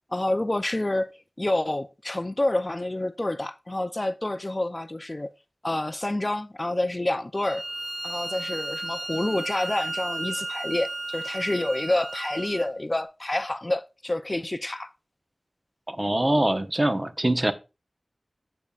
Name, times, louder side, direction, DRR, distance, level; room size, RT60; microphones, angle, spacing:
voice 1, 0.1-5.3 5.6-7.6 8.0-14.9, left 1 dB, 30° left, 0.4 m, -28 dB
Bowed string instrument, 7.4-12.7, right 2 dB, 55° right, 3.0 m, -34 dB
voice 2, 15.9-17.5, right 1 dB, 30° right, 0.9 m, -23 dB
14.5 x 5.4 x 2.4 m
wide cardioid pair, 60°, 0 cm